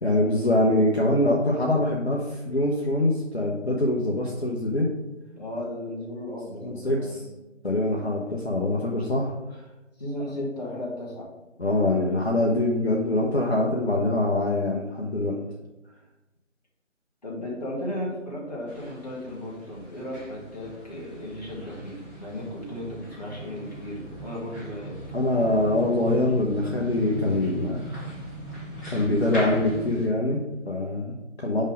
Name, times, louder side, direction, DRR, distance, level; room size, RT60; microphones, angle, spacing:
voice 1, 0.0-4.9 6.6-7.2 7.6-9.6 11.6-15.4 25.1-28.1 28.9-31.6, left 1 dB, 55° left, -2 dB, 1.0 m, -24 dB
voice 2, 5.3-7.2 10.0-11.3 15.4-15.5 17.2-25.0, left 1 dB, 30° left, -5 dB, 1.7 m, -35 dB
sound 1, 18.7-30.1, right 1 dB, 15° left, 2.3 m, -40 dB
5.4 x 5.3 x 5.1 m, 1.0 s
figure-of-eight pair, 160°, 38 cm